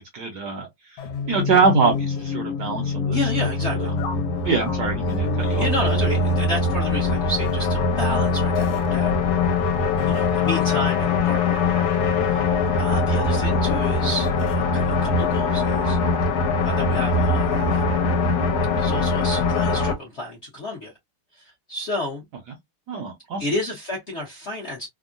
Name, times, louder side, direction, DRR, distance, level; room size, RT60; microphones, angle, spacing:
voice 1, 0.1-1.0 1.3-3.5 3.8-4.0 4.4-5.7 10.0-10.2 22.9-23.5, right 5 dB, 70° right, 1.0 m, -24 dB
sound 1, 1.0-19.9, left 3 dB, 75° left, 1.5 m, -22 dB
voice 2, 3.1-3.9 5.5-9.1 10.1-11.9 12.2-16.0 16.6-18.1 18.8-20.9 21.3-22.2 23.4-24.9, left 1 dB, 55° left, 0.8 m, -31 dB
Bass guitar, 5.2-8.2, left 8 dB, 15° left, 0.4 m, -40 dB
3.5 x 2.1 x 2.5 m
omnidirectional pair, 2.4 m